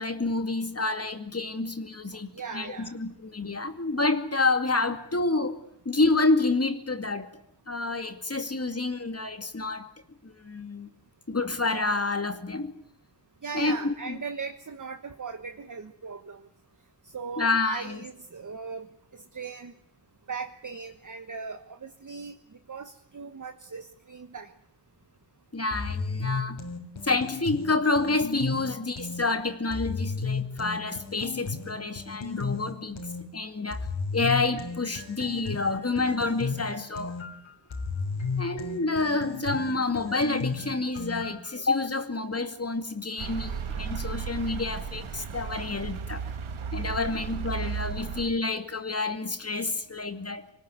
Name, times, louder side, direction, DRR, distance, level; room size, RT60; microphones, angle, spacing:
voice 1, 0.0-5.6 5.8-7.3 7.7-9.9 10.2-10.9 11.3-12.7 13.5-14.2 17.4-18.0 25.5-26.6 27.0-33.0 33.3-33.9 34.1-37.2 38.4-46.2 46.7-50.5, left 3 dB, 30° left, 8 dB, 2.4 m, -28 dB
voice 2, 2.3-2.9 13.4-16.4 17.1-18.9 19.1-19.7 20.3-22.4 22.7-24.5 47.0-47.2, right 5 dB, 40° right, 8 dB, 1.3 m, -38 dB
sound 1, 25.7-29.2 29.7-33.2 33.7-41.5, left 4 dB, 70° left, 3.9 m, -33 dB
sound 2, 43.2-48.3, right 6 dB, 85° right, 1.6 m, -34 dB
25.5 x 19.5 x 9.4 m, 0.71 s
wide cardioid pair, 100°, 48 cm